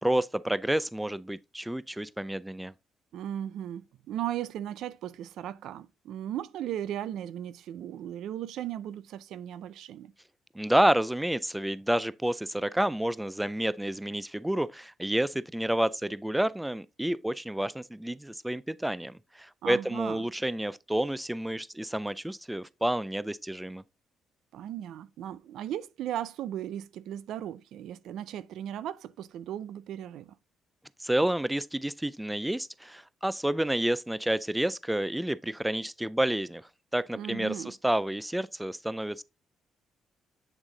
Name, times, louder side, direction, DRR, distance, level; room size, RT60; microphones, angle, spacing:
voice 1, 0.0-2.7 10.5-23.8 31.0-36.6 36.9-39.2, right 1 dB, 5° right, 0.3 m, -29 dB
voice 2, 3.1-10.1 19.6-20.2 24.5-30.3 37.1-37.7, right 11 dB, 80° right, 0.4 m, -37 dB
8.1 x 3.6 x 3.8 m
cardioid pair, 90°, 0 cm